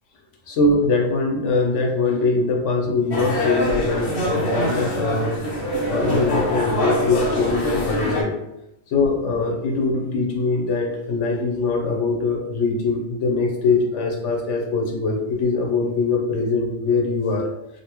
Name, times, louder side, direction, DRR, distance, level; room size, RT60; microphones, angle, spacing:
voice 1, 0.5-5.4 5.9-8.3 8.9-17.7, left 3 dB, 85° left, 1 dB, 1.1 m, -22 dB
sound 1, 3.1-8.2, left 1 dB, 55° left, 0.9 m, -24 dB
3.9 x 2.2 x 2.9 m, 0.87 s
omnidirectional pair, 1.2 m